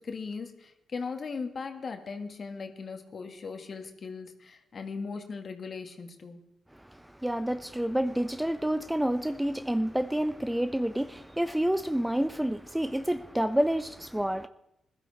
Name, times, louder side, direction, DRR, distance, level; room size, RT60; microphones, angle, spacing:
voice 1, 0.0-6.4, left 4 dB, 50° left, 2.1 m, -38 dB
voice 2, 6.7-14.5, right 1 dB, 5° right, 0.8 m, -29 dB
20.5 x 12.0 x 4.3 m
hypercardioid pair, 40°, 0 cm